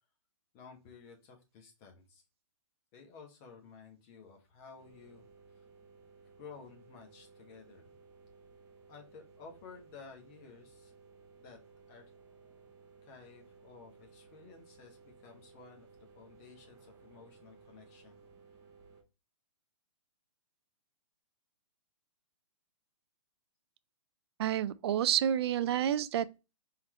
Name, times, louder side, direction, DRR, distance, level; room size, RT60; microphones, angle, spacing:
voice 1, 0.5-2.2 2.9-5.3 5.5-5.6 6.4-7.9 8.9-10.9 11.4-11.6 11.9-12.0 13.0-15.9 16.1-18.2, left 5 dB, 30° left, 1.4 m, -54 dB
sound 1, 4.8-19.0, right 5 dB, 15° right, 0.9 m, -59 dB
voice 2, 24.4-26.4, right 10 dB, 50° right, 0.4 m, -29 dB
4.3 x 3.8 x 3.1 m
hypercardioid pair, 155°, 17 cm